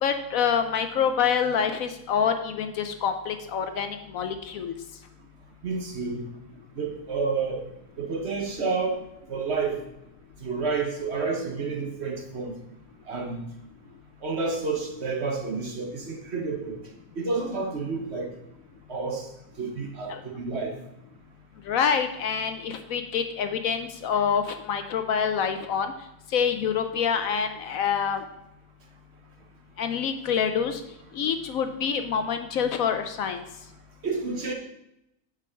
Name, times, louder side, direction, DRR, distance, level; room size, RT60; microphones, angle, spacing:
voice 1, 0.0-4.7 20.1-20.2 21.6-25.9 26.3-28.2 29.8-30.8 31.1-33.4, left 7 dB, 65° left, 7 dB, 1.0 m, -26 dB
voice 2, 5.6-6.3 6.8-7.6 8.0-9.0 9.3-9.8 10.4-12.5 13.1-13.5 14.2-16.8 17.2-18.3 18.9-19.3 19.6-20.8 34.0-34.5, right 4 dB, 50° right, 3 dB, 1.0 m, -29 dB
7.8 x 4.8 x 5.6 m, 0.84 s
omnidirectional pair, 1.7 m